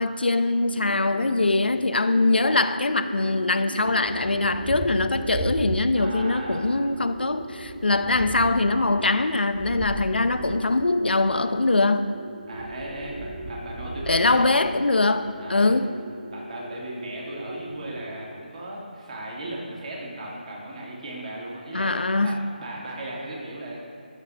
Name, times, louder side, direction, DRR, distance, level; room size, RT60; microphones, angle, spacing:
voice 1, 0.0-12.1 14.1-15.9 21.7-22.4, left 2 dB, 85° left, 9 dB, 0.6 m, -22 dB
sound 1, 0.7-18.2, equal, 85° right, 2.1 m, -39 dB
Thunder, 3.8-6.3 6.6-11.4 12.5-15.1, right 2 dB, 5° right, 0.5 m, -37 dB
voice 2, 5.9-6.7 12.5-14.5 15.4-15.7 16.3-23.8, right 1 dB, 45° right, -3 dB, 2.4 m, -36 dB
12.5 x 6.4 x 4.2 m, 2.3 s
figure-of-eight pair, 160°, 5 cm